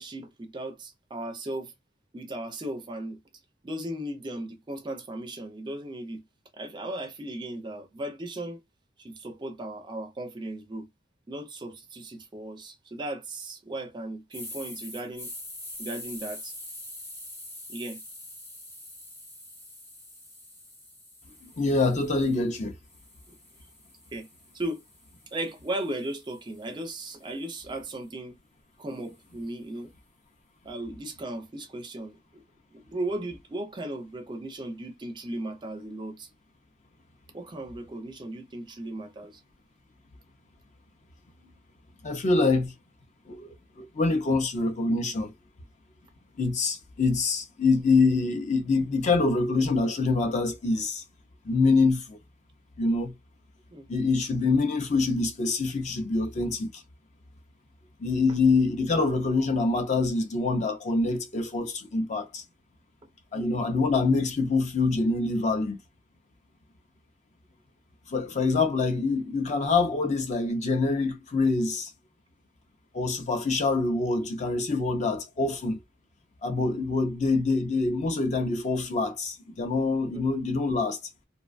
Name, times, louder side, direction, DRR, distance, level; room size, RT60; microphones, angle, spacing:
voice 1, 0.0-1.7 2.1-3.2 3.6-6.2 6.6-8.6 9.0-10.9 11.3-15.3 15.8-16.5 17.7-18.0 24.1-24.3 24.5-24.8 25.3-28.4 28.8-29.9 30.6-32.4 32.7-36.3 37.3-39.4 53.7-53.9 63.3-63.7 80.1-80.2, right 1 dB, 25° right, 0.4 m, -36 dB
sound 1, 14.3-22.4 22.9-27.1, left 1 dB, 10° left, 0.8 m, -45 dB
voice 2, 21.4-22.7 42.0-42.7 43.3-43.5 43.8-45.3 46.4-51.0 51.4-52.2 52.8-53.1 53.9-56.8 58.0-62.4 63.3-65.8 68.1-71.9 72.9-75.8 76.4-81.0, left 3 dB, 40° left, 0.4 m, -25 dB
2.4 x 2.2 x 2.4 m
head